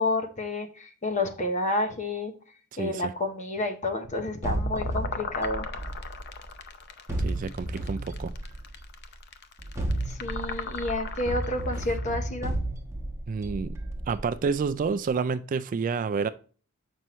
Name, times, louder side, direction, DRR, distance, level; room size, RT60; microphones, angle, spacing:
voice 1, 0.0-2.3 2.8-5.7 10.1-12.6, left 2 dB, 35° left, 5 dB, 0.9 m, -30 dB
voice 2, 2.8-3.1 7.2-8.3 13.3-13.7 14.1-16.3, right 5 dB, 35° right, 11 dB, 0.3 m, -29 dB
sound 1, 4.0-12.2, left 5 dB, 50° left, 0.6 m, -39 dB
sound 2, 4.4-6.6 7.1-8.9 9.6-14.7, right 1 dB, 15° right, 1.1 m, -33 dB
7.4 x 5.5 x 3.1 m, 0.39 s
head